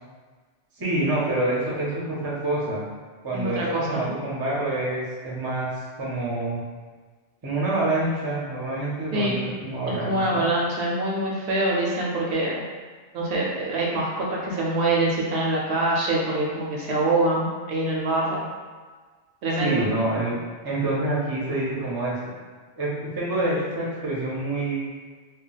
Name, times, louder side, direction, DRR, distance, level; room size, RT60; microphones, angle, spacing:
voice 1, 0.8-2.8 3.2-5.7 6.0-6.6 7.4-10.4 19.6-20.4 20.6-22.2 22.8-24.8, right 2 dB, 25° right, -6 dB, 0.5 m, -27 dB
voice 2, 3.3-4.1 9.1-9.4 9.9-12.5 13.1-18.4 19.4-19.9, right 2 dB, 70° right, -3 dB, 0.8 m, -25 dB
2.3 x 2.2 x 3.9 m, 1.4 s
omnidirectional pair, 1.2 m